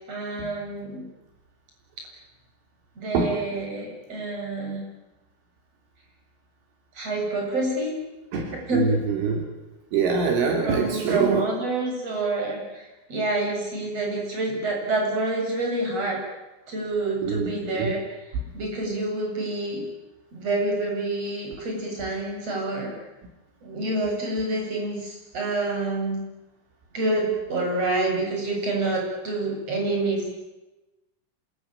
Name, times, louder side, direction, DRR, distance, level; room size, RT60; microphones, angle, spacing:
voice 1, 0.1-1.1 3.0-4.9 7.0-8.0 8.7-8.9 10.6-16.2 16.7-18.0 18.5-19.9 20.3-23.0 23.6-26.2 26.9-30.3, right 2 dB, 30° right, 0 dB, 8.7 m, -27 dB
voice 2, 8.3-9.5 9.9-11.4 17.2-17.9, right 5 dB, 70° right, 3 dB, 5.4 m, -24 dB
27.0 x 23.0 x 9.3 m, 1.0 s
omnidirectional pair, 5.9 m